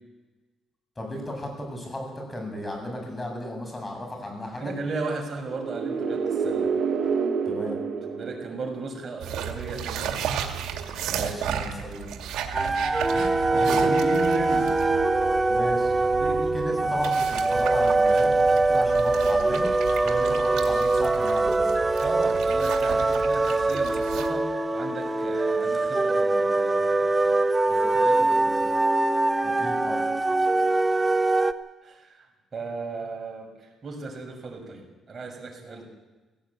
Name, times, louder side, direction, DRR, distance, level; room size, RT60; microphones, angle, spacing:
voice 1, 1.0-4.7 7.5-7.8 11.0-12.0 13.1-13.8 15.5-15.9 16.5-19.7 20.0-21.7 29.4-30.0 35.7-35.8, left 1 dB, 20° left, 2 dB, 7.7 m, -35 dB
voice 2, 4.6-6.7 8.1-10.2 13.1-15.0 16.0-16.5 20.3-20.4 22.0-27.4 27.7-28.7 31.8-32.3 32.5-35.9, right 3 dB, 40° right, 2 dB, 6.5 m, -36 dB
sound 1, 5.4-9.2, right 5 dB, 65° right, 1.9 m, -28 dB
sound 2, 9.2-24.3, right 9 dB, 85° right, 2.1 m, -34 dB
sound 3, 12.5-31.5, right 2 dB, 20° right, 0.9 m, -23 dB
17.5 x 16.5 x 8.8 m, 1.2 s
cardioid pair, 90°, 0 cm